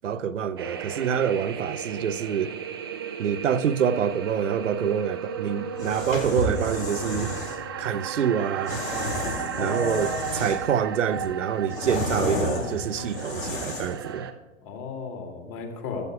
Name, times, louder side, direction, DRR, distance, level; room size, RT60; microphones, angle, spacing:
voice 1, 0.0-2.5 3.2-7.3 7.8-8.8 9.6-14.3, right 8 dB, 65° right, 0.7 m, -26 dB
sound 1, 0.6-14.3, right 8 dB, 20° right, 0.3 m, -35 dB
sound 2, 5.7-7.6 8.7-10.7 11.1-14.0, left 2 dB, 75° left, 2.0 m, -31 dB
voice 2, 9.6-10.4 14.6-16.0, left 4 dB, 35° left, 2.3 m, -34 dB
15.0 x 13.5 x 2.4 m
figure-of-eight pair, 110°, 40 cm